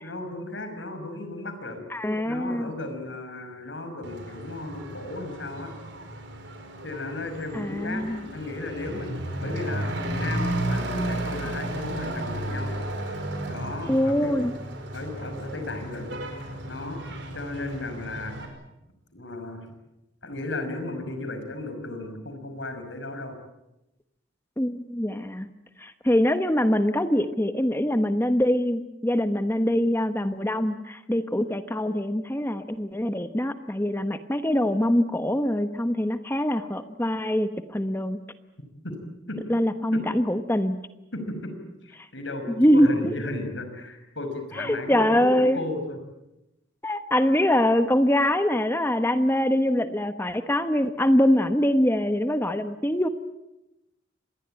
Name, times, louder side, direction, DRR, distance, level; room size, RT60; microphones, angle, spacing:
voice 1, 0.0-5.7 6.8-8.1 8.3-12.7 13.5-14.4 14.9-16.1 16.7-17.0 17.3-18.4 19.1-19.7 20.2-23.4 38.8-39.0 39.3-39.4 39.9-40.0 41.1-41.5 41.8-46.0, left 2 dB, 75° left, 7 dB, 5.6 m, -35 dB
voice 2, 1.9-2.7 7.5-8.2 13.9-14.5 24.6-25.5 25.8-38.2 39.5-40.8 42.6-43.2 44.6-45.6 46.8-53.1, left 1 dB, 10° left, 10 dB, 1.1 m, -23 dB
Truck / Accelerating revving vroom, 4.0-18.5, right 1 dB, 65° right, 5.3 m, -33 dB
26.0 x 20.5 x 8.9 m, 0.92 s
head